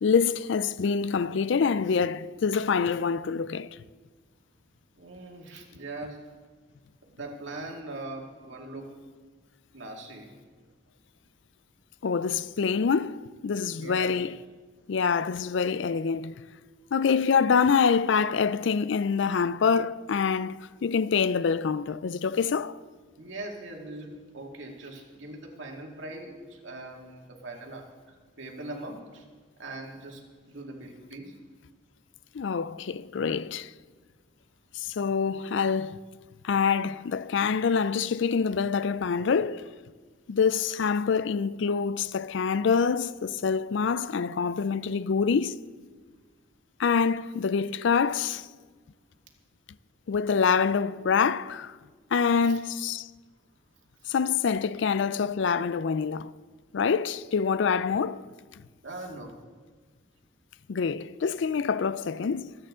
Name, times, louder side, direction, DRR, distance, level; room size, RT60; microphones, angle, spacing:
voice 1, 0.0-3.8 12.0-14.4 14.9-16.4 16.9-22.8 32.3-33.7 34.7-36.0 36.4-39.7 40.3-45.6 46.8-48.5 50.1-51.8 52.1-53.1 54.1-56.3 56.7-58.2 60.7-62.6, left 6 dB, 70° left, 0.4 m, -26 dB
voice 2, 5.0-6.2 7.1-8.9 9.7-10.3 13.7-14.1 23.2-29.2 29.6-31.3 52.4-52.6 58.8-59.3, right 2 dB, 70° right, 2.2 m, -41 dB
26.0 x 9.1 x 3.8 m
head